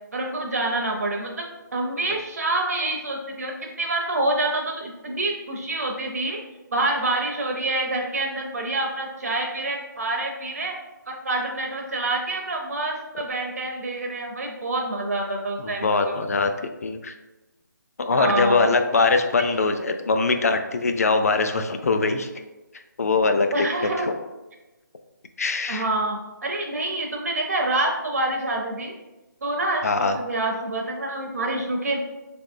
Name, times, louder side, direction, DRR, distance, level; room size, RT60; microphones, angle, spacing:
voice 1, 0.1-1.4 1.7-6.4 6.7-10.7 11.1-16.2 18.1-18.7 23.5-24.1 25.7-28.9 29.4-32.0, right 2 dB, 50° right, 1 dB, 0.5 m, -27 dB
voice 2, 15.6-17.1 18.0-22.3 23.0-23.5 23.8-24.1 25.4-25.9 29.8-30.2, left 3 dB, 50° left, 7 dB, 0.3 m, -22 dB
3.7 x 3.4 x 2.5 m, 1.1 s
hypercardioid pair, 175°, 11 cm